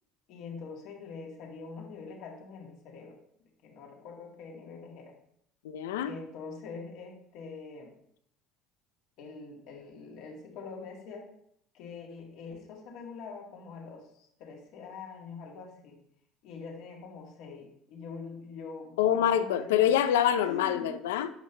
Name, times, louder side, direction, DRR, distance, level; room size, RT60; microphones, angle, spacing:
voice 1, 0.3-3.2 3.6-5.1 6.0-7.9 9.2-11.3 11.7-16.0 16.4-19.9 20.5-21.0, left 4 dB, 70° left, -1 dB, 2.0 m, -44 dB
voice 2, 5.6-6.1 19.0-21.3, left 10 dB, 90° left, 11 dB, 0.5 m, -26 dB
8.0 x 5.5 x 3.3 m, 0.70 s
supercardioid pair, 80°, 0 cm